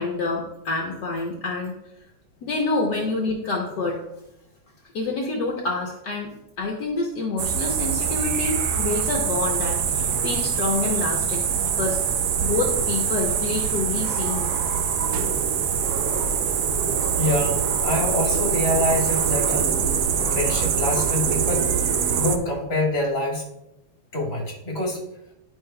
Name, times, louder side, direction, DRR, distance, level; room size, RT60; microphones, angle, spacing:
voice 1, 0.0-1.7 2.4-4.0 4.9-12.0 12.4-14.5, left 3 dB, 65° left, -1 dB, 1.4 m, -27 dB
sound 1, 7.4-22.4, right 7 dB, 70° right, 1.0 m, -24 dB
voice 2, 17.2-19.7 20.3-21.7 22.2-23.5 24.1-25.0, left 1 dB, 35° left, -2 dB, 1.9 m, -25 dB
10.5 x 5.4 x 2.2 m, 0.86 s
omnidirectional pair, 2.0 m